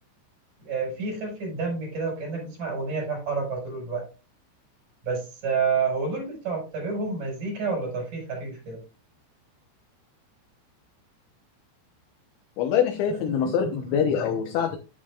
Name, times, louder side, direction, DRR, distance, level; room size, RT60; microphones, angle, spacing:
voice 1, 0.6-4.0 5.0-8.8 13.1-13.6 13.9-14.0, right 4 dB, 40° right, 0 dB, 6.7 m, -29 dB
voice 2, 12.6-14.8, left 8 dB, 75° left, 3 dB, 3.1 m, -24 dB
10.0 x 10.0 x 2.5 m, 0.30 s
omnidirectional pair, 5.8 m